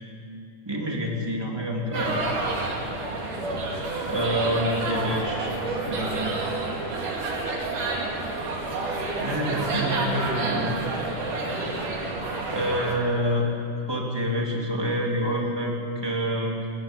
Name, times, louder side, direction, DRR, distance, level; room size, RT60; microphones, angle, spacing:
voice 1, 0.7-2.2 4.0-6.3 9.2-10.8 12.5-13.5 13.9-15.7 16.0-16.6, equal, 10° right, -1 dB, 2.2 m, -27 dB
sound 1, 1.9-12.9, right 2 dB, 85° right, 4.2 m, -29 dB
20.5 x 14.5 x 8.8 m, 2.5 s
omnidirectional pair, 3.6 m